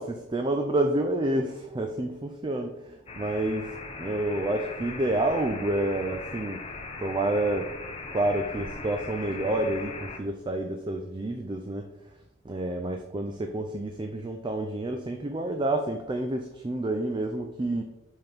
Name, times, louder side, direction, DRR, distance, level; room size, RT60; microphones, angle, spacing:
voice 1, 0.3-6.6 7.0-7.7 8.1-11.9 12.4-17.8, right 1 dB, 25° right, 5 dB, 0.4 m, -29 dB
sound 1, 3.1-10.2, left 3 dB, 30° left, 0.7 m, -39 dB
5.6 x 5.6 x 3.4 m, 0.91 s
head